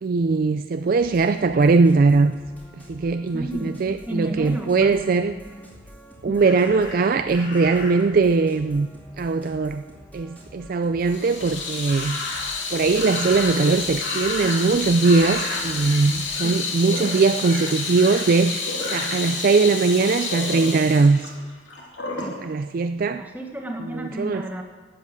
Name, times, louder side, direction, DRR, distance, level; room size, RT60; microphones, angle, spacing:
voice 1, 0.0-2.3 2.9-5.3 6.2-8.9 9.2-9.8 10.1-12.2 12.7-21.2 22.4-23.2 23.9-24.4, right 4 dB, 45° right, 9 dB, 0.4 m, -20 dB
sound 1, 1.0-16.6, equal, 10° left, 2.2 m, -47 dB
voice 2, 3.3-5.1 5.4-5.7 6.3-6.4 16.4-16.6 22.2-22.4 23.1-24.6, right 1 dB, 10° right, 2 dB, 1.4 m, -33 dB
Crow, 6.4-8.1 11.9-12.6 13.0-14.8 15.0-16.0 16.3-16.6 16.9-18.2 18.8-19.1, left 2 dB, 55° left, 4.6 m, -34 dB
Water tap faucet / Sink (filling or washing), 11.0-22.4, left 4 dB, 70° left, 2.5 m, -30 dB
12.0 x 7.8 x 7.8 m, 1.4 s
head